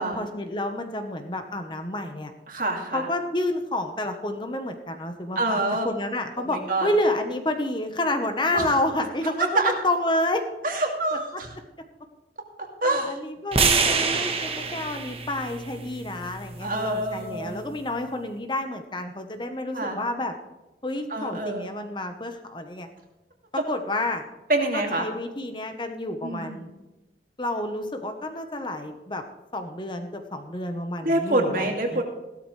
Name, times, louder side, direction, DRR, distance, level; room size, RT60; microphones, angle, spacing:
voice 1, 0.0-2.3 2.9-10.4 12.8-20.3 20.8-22.9 23.5-24.3 24.7-26.7 27.4-29.2 29.5-32.0, left 1 dB, 25° left, 6 dB, 1.1 m, -29 dB
voice 2, 2.5-3.1 5.4-5.9 6.4-6.9 8.5-8.7 9.4-9.7 10.6-11.5 12.8-13.2 16.6-17.6 19.7-20.0 21.1-21.7 24.5-25.1 26.2-26.6 31.0-32.0, right 2 dB, 50° right, 2 dB, 2.4 m, -26 dB
sound 1, 13.5-17.7, right 5 dB, 35° right, 1.3 m, -27 dB
16.0 x 12.5 x 3.3 m, 1.0 s
head